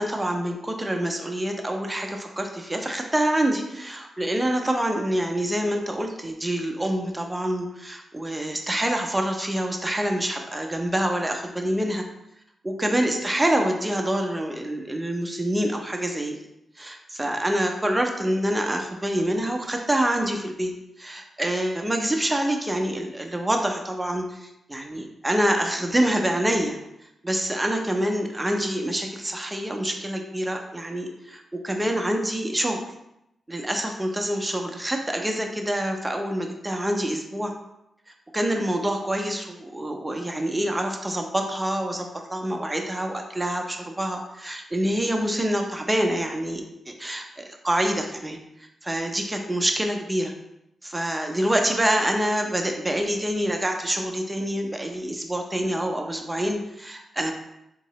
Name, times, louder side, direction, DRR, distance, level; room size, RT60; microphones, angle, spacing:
voice 1, 0.0-12.0 12.6-16.4 16.8-20.7 21.0-26.8 27.2-32.8 33.5-37.5 38.3-48.4 48.8-50.3 50.8-57.3, right 1 dB, 15° right, 3 dB, 0.6 m, -26 dB
3.7 x 2.8 x 3.0 m, 0.84 s
cardioid pair, 55°, 0 cm